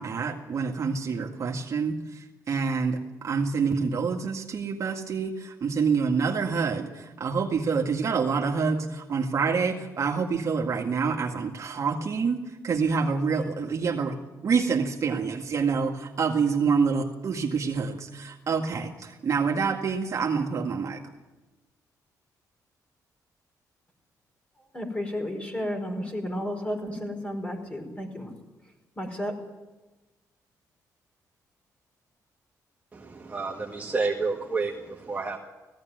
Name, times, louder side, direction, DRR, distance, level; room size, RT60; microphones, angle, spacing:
voice 1, 0.0-14.2 14.4-21.0, right 5 dB, 50° right, 2 dB, 2.0 m, -27 dB
voice 2, 24.7-28.3 28.9-29.4, left 1 dB, 20° left, 2 dB, 5.1 m, -32 dB
voice 3, 32.9-35.4, right 4 dB, 20° right, 0 dB, 1.8 m, -30 dB
18.0 x 16.0 x 9.3 m, 1.1 s
cardioid pair, 110°, 7 cm